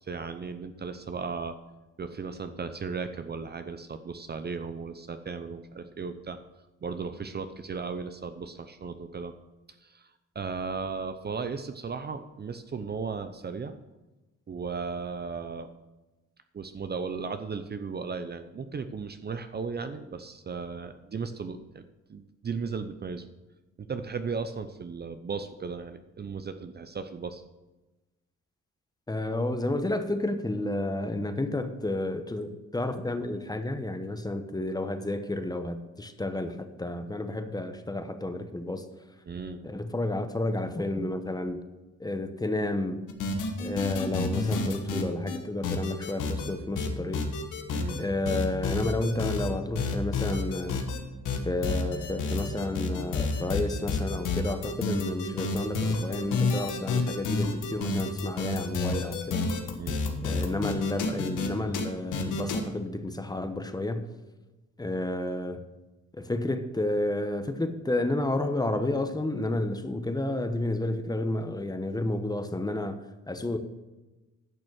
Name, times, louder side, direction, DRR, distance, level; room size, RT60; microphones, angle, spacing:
voice 1, 0.0-1.6 2.0-6.4 6.8-9.3 9.8-13.8 14.5-15.7 16.5-21.8 22.1-23.2 23.8-27.4 39.3-39.6 47.7-48.0 59.8-60.0, right 5 dB, 35° right, 0.7 m, -36 dB
voice 2, 29.1-38.8 39.6-41.6 42.0-43.0 43.6-47.2 48.0-50.8 51.4-59.4 60.2-64.1 64.8-65.6 66.1-73.0 73.3-73.6, left 1 dB, 15° left, 1.0 m, -31 dB
sound 1, 43.1-45.4 45.6-46.5 46.8-48.0 48.2-49.5 49.7-51.0 51.2-61.5 61.7-61.8 62.1-62.6, left 3 dB, 85° left, 1.5 m, -29 dB
10.5 x 6.2 x 6.3 m
cardioid pair, 90°, 30 cm